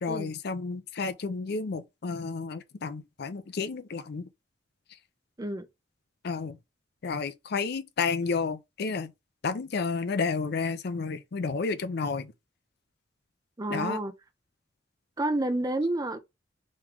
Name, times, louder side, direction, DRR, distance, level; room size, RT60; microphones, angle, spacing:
voice 1, 0.0-4.2 6.2-6.6 7.0-9.1 9.4-12.3 13.7-14.0, left 4 dB, 60° left, 0.5 m, -31 dB
voice 2, 13.6-14.1 15.2-16.2, right 1 dB, 20° right, 0.5 m, -29 dB
3.6 x 3.2 x 3.0 m
head